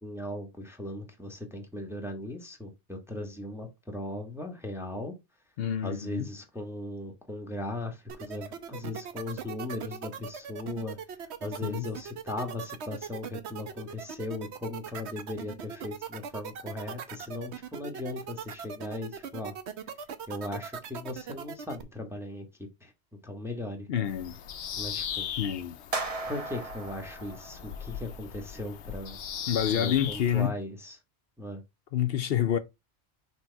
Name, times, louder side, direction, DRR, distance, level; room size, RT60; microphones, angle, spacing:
voice 1, 0.0-5.1 5.8-11.0 11.4-19.5 20.3-22.4 22.8-22.9 23.2-23.9 24.8-25.3 26.3-29.2 29.7-31.0 31.4-31.6, left 1 dB, ahead, 1.3 m, -38 dB
voice 2, 5.6-6.3 11.6-11.9 23.9-24.4 25.4-25.8 29.5-30.5 31.9-32.6, left 10 dB, 65° left, 0.8 m, -28 dB
sound 1, 8.1-21.8, right 7 dB, 75° right, 1.1 m, -39 dB
Bird vocalization bird call bird song, 24.1-30.5, left 8 dB, 90° left, 1.0 m, -38 dB
sound 2, 25.9-28.2, right 3 dB, 35° right, 1.1 m, -37 dB
6.1 x 3.4 x 4.5 m
omnidirectional pair, 1.1 m